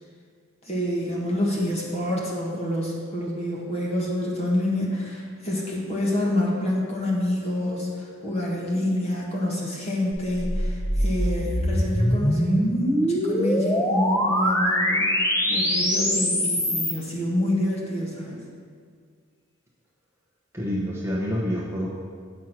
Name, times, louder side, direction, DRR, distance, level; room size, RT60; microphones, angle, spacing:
voice 1, 0.6-15.1 15.5-18.4, left 1 dB, 30° left, -3 dB, 1.6 m, -27 dB
sound 1, 10.1-17.0, equal, 15° left, 0.8 m, -23 dB
voice 2, 20.5-21.9, equal, 15° right, -4 dB, 0.9 m, -27 dB
7.4 x 6.3 x 5.9 m, 2.1 s
head